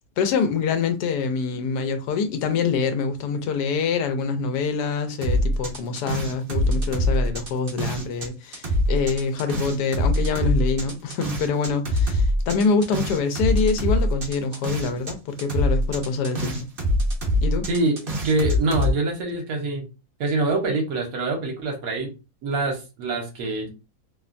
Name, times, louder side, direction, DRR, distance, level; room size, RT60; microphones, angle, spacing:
voice 1, 0.2-16.6 17.4-17.7, left 5 dB, 85° left, 1.2 m, -25 dB
sound 1, 5.2-8.3 8.5-15.1 15.4-18.9, equal, 50° right, 0.7 m, -24 dB
voice 2, 18.2-19.9 20.2-22.1 22.4-23.7, right 2 dB, 65° right, 1.1 m, -25 dB
2.9 x 2.1 x 2.4 m
omnidirectional pair, 1.7 m